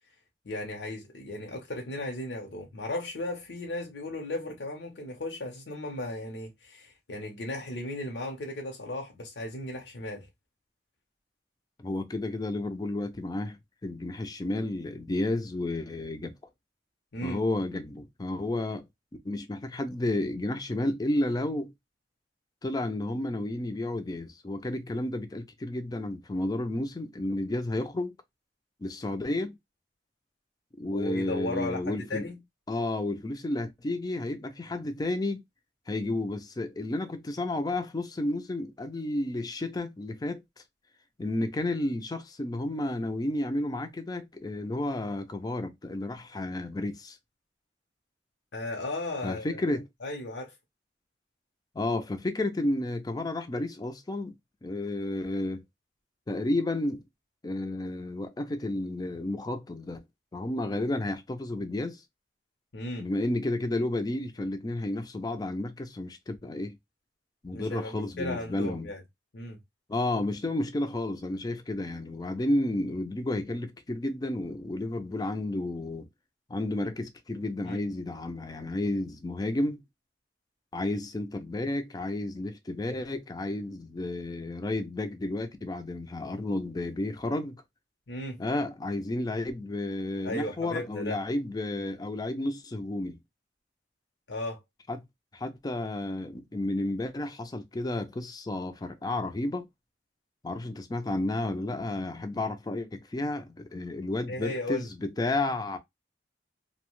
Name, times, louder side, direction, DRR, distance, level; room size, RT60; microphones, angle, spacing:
voice 1, 0.4-10.3 17.1-17.4 30.9-32.4 48.5-50.5 62.7-63.1 67.5-69.0 69.3-69.6 77.7-77.8 88.1-88.4 90.2-91.2 94.3-94.6 104.3-104.8, left 1 dB, 70° left, 0.7 m, -36 dB
voice 2, 11.8-16.3 17.2-18.8 19.2-21.7 22.6-28.1 28.8-29.6 30.8-32.3 32.7-35.4 35.9-40.4 41.2-47.2 49.2-49.9 51.7-54.3 54.6-55.6 56.3-57.1 57.4-60.0 60.3-62.0 63.0-66.8 67.4-68.9 69.9-76.1 76.5-79.8 80.7-87.6 88.4-93.2 94.9-95.0 95.3-99.7 100.4-105.8, left 2 dB, 20° left, 0.4 m, -31 dB
2.7 x 2.1 x 2.9 m
head